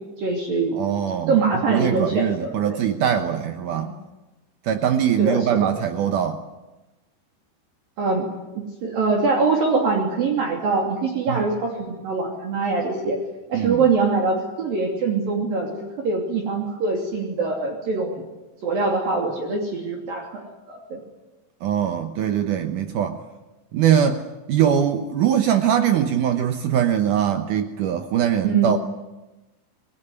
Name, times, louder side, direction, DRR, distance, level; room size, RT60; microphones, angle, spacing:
voice 1, 0.2-0.8 1.3-2.8 3.7-3.9 5.2-5.7 8.0-13.2 13.5-18.2 18.6-20.4 20.7-21.0 28.4-28.7, right 4 dB, 50° right, 0 dB, 4.4 m, -23 dB
voice 2, 0.7-1.4 1.7-3.9 4.6-6.4 11.3-11.5 13.5-13.8 21.6-23.2 23.7-24.2 24.5-28.8, right 9 dB, 80° right, 7 dB, 1.8 m, -22 dB
26.5 x 21.0 x 9.7 m, 1.1 s
omnidirectional pair, 5.4 m